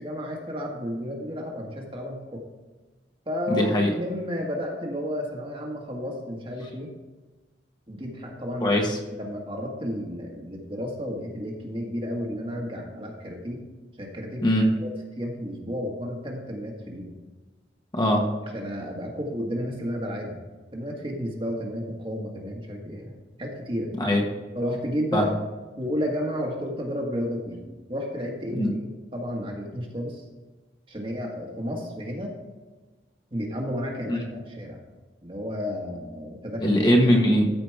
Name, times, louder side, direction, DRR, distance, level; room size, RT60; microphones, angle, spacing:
voice 1, 0.0-2.4 3.2-6.9 7.9-8.7 9.1-13.6 14.0-14.4 14.8-14.9 15.2-17.2 18.5-20.4 20.7-23.1 23.4-23.9 24.5-25.3 25.8-27.6 27.9-28.9 29.1-30.2 30.9-32.4 33.3-34.8 35.2-36.8, equal, 30° right, 0 dB, 1.6 m, -32 dB
voice 2, 3.5-3.9 8.6-9.0 14.4-14.7 17.9-18.2 24.0-24.2 25.1-25.3 28.6-28.7 34.1-34.2 36.6-37.4, equal, 25° left, 0 dB, 1.3 m, -21 dB
13.5 x 5.0 x 4.7 m, 1.2 s
head